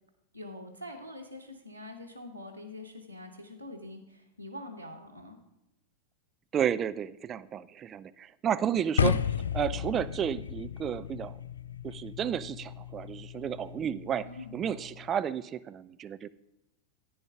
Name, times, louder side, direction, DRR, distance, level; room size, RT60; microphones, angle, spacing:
voice 1, 0.3-5.4 14.2-14.5, left 1 dB, 85° left, 0 dB, 1.0 m, -44 dB
voice 2, 6.5-9.2 9.5-11.4 11.8-14.3 14.5-16.3, right 9 dB, 25° right, 14 dB, 0.4 m, -32 dB
sound 1, 9.0-15.1, left 7 dB, 70° left, 0.4 m, -34 dB
10.5 x 9.5 x 3.6 m, 0.92 s
figure-of-eight pair, 90°, 0 cm